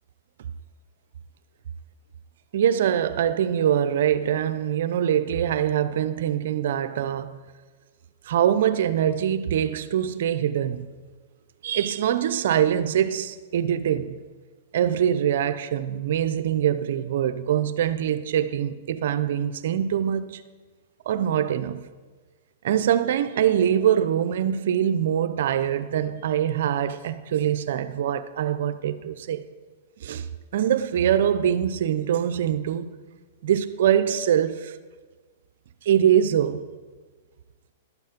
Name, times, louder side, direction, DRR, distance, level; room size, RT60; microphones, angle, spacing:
voice 1, 2.5-7.4 8.2-10.9 11.6-14.2 14.7-20.4 21.1-21.8 22.6-29.5 30.0-30.3 30.5-32.9 33.4-34.8 35.8-36.7, right 9 dB, 65° right, 0.6 m, -23 dB
12.0 x 8.3 x 5.2 m
hypercardioid pair, 140°, 0 cm